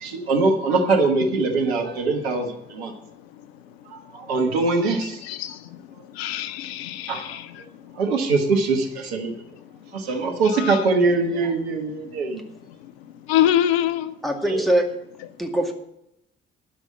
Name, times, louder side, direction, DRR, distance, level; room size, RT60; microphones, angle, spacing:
voice 1, 0.0-2.9 3.9-5.2 7.1-7.4 7.9-9.3 9.9-12.4 14.4-14.6, right 3 dB, 75° right, 1.3 m, -22 dB
voice 2, 6.2-7.4 10.4-10.8 13.3-14.1, left 11 dB, 70° left, 0.6 m, -23 dB
voice 3, 14.2-14.9 15.4-15.7, right 1 dB, ahead, 2.1 m, -22 dB
12.0 x 5.4 x 8.5 m
figure-of-eight pair, 40°, 31 cm